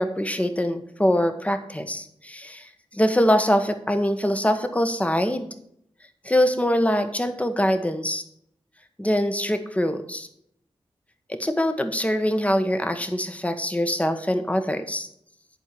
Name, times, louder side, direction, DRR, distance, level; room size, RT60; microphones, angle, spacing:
voice 1, 0.0-5.5 6.2-8.2 9.0-10.3 11.3-15.1, equal, 15° left, 8 dB, 1.2 m, -23 dB
10.5 x 4.7 x 7.1 m, 0.70 s
cardioid pair, 55°, 10 cm